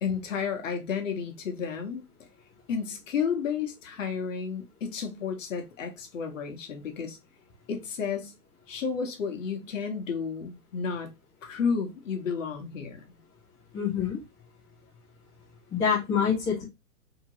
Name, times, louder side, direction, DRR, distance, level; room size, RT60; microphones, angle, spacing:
voice 1, 0.0-2.0 2.7-7.2 7.7-8.3 8.7-11.1 11.4-13.0, left 6 dB, 55° left, 1.1 m, -32 dB
voice 2, 13.7-14.2 15.7-16.6, left 7 dB, 10° left, 0.6 m, -26 dB
3.5 x 2.9 x 2.9 m
hypercardioid pair, 140°, 46 cm